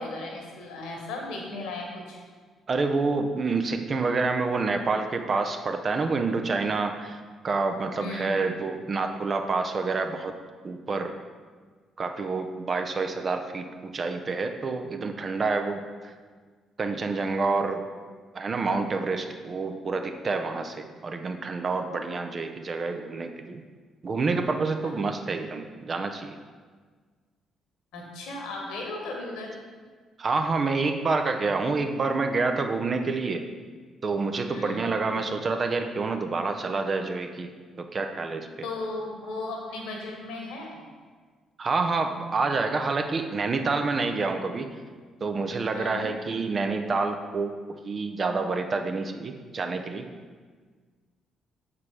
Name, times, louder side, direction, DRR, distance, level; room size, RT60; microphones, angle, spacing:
voice 1, 0.0-2.2 8.0-8.5 24.8-24.9 27.9-29.6 34.5-34.9 38.6-40.8 45.7-46.1, left 2 dB, 70° left, 0 dB, 1.4 m, -36 dB
voice 2, 2.7-10.3 10.6-11.1 12.0-16.1 16.8-17.8 18.3-23.6 24.0-26.4 30.2-33.4 34.0-37.5 37.8-38.5 41.6-44.7 45.2-50.0, right 3 dB, 45° right, 6 dB, 0.7 m, -28 dB
7.1 x 4.8 x 4.8 m, 1.5 s
hypercardioid pair, 45°, 0 cm